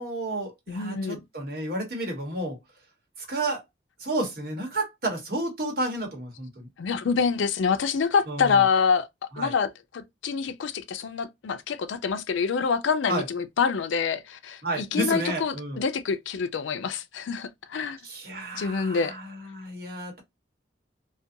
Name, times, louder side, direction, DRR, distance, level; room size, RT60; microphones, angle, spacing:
voice 1, 0.0-2.6 3.2-3.6 4.0-6.7 8.3-8.6 9.3-9.5 13.1-13.2 14.6-15.8 18.0-20.2, right 2 dB, 50° right, 1.1 m, -31 dB
voice 2, 0.7-1.2 6.8-9.1 9.4-18.0 18.5-19.1, left 5 dB, 85° left, 0.4 m, -26 dB
2.4 x 2.2 x 2.6 m
head